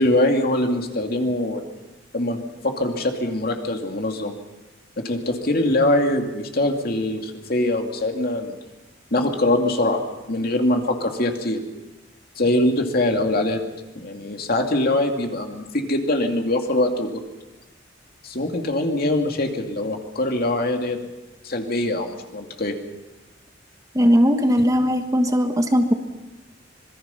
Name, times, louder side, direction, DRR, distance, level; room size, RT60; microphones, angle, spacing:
voice 1, 0.0-1.6 2.1-2.4 2.6-4.4 5.0-8.6 9.1-10.0 10.3-11.6 12.4-13.6 14.0-17.2 18.2-21.0 21.4-22.7, left 1 dB, 55° left, 3 dB, 2.5 m, -23 dB
voice 2, 23.9-25.9, equal, 20° right, 6 dB, 1.4 m, -18 dB
25.5 x 22.0 x 5.7 m, 1.1 s
head